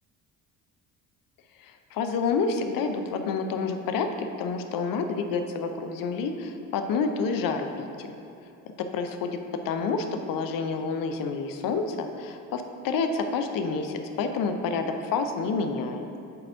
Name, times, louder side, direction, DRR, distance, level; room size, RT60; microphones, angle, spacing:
voice 1, 1.6-8.1 8.8-9.4 9.6-16.2, left 4 dB, 50° left, 6 dB, 0.7 m, -29 dB
5.3 x 4.2 x 5.5 m, 2.8 s
hypercardioid pair, 55°, 43 cm